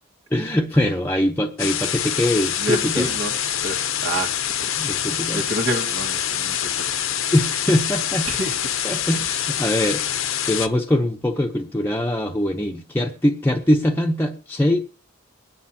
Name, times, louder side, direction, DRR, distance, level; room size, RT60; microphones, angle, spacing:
voice 1, 0.3-3.1 4.8-5.4 7.3-8.3 8.8-10.0 10.5-14.8, left 1 dB, 10° left, 1 dB, 0.8 m, -22 dB
sound 1, 1.6-10.7, left 10 dB, 75° left, 0.9 m, -25 dB
voice 2, 2.6-3.3 3.6-4.3 4.6-4.7 5.3-6.9 8.3-8.6, right 1 dB, 65° right, -3 dB, 1.9 m, -27 dB
23.5 x 9.8 x 2.9 m, 0.35 s
head